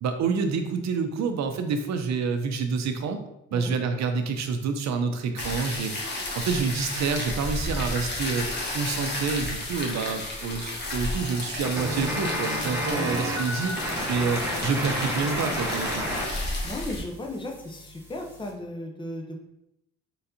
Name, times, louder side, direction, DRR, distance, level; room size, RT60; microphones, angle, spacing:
voice 1, 0.0-3.2 3.5-8.5 8.7-13.7 14.1-16.0, right 5 dB, 65° right, 7 dB, 0.7 m, -28 dB
sound 1, 5.4-17.0, left 2 dB, 35° left, 1.3 m, -33 dB
sound 2, 11.6-16.3 16.5-18.5, equal, 5° right, 1.1 m, -31 dB
voice 2, 16.6-19.5, left 1 dB, 15° left, 2 dB, 0.7 m, -35 dB
4.3 x 3.9 x 2.7 m, 0.84 s
cardioid pair, 90°, 30 cm